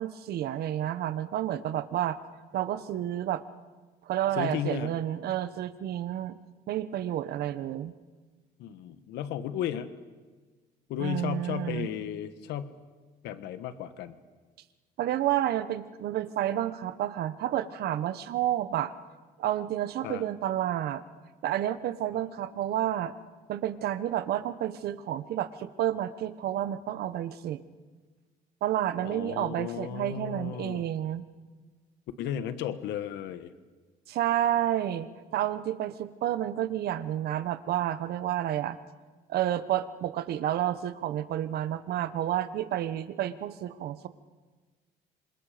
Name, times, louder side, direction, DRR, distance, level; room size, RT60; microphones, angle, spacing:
voice 1, 0.0-2.2 2.5-3.4 4.0-6.4 6.7-7.9 11.0-11.9 15.0-18.9 19.4-21.0 21.4-23.1 23.5-27.6 28.6-31.2 34.1-38.8 39.3-44.1, right 12 dB, 70° right, 12 dB, 1.2 m, -30 dB
voice 2, 4.3-4.9 8.6-9.9 10.9-12.7 13.2-14.1 20.0-20.2 29.0-30.8 32.2-33.5, left 10 dB, 85° left, 11 dB, 1.5 m, -34 dB
27.0 x 26.5 x 5.2 m, 1.4 s
cardioid pair, 110°, 17 cm